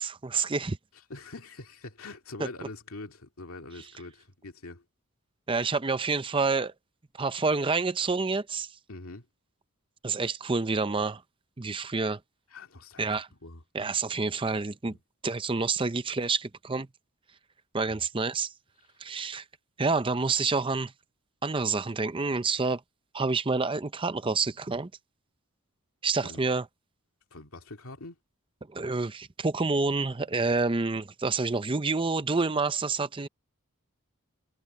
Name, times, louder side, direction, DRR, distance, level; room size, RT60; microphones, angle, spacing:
voice 1, 0.2-0.8 5.5-6.7 7.2-8.7 10.0-11.2 11.6-12.2 13.0-13.3 13.7-14.9 15.2-16.9 17.7-18.5 19.0-19.4 19.8-20.9 21.4-22.8 23.1-24.9 26.0-26.7 28.7-33.3, right 4 dB, 25° right, 0.6 m, -28 dB
voice 2, 1.1-4.8 8.9-9.3 12.5-13.1 13.4-13.6 14.9-15.0 17.9-18.0 26.2-26.4 27.3-28.2, left 2 dB, 70° left, 2.3 m, -44 dB
head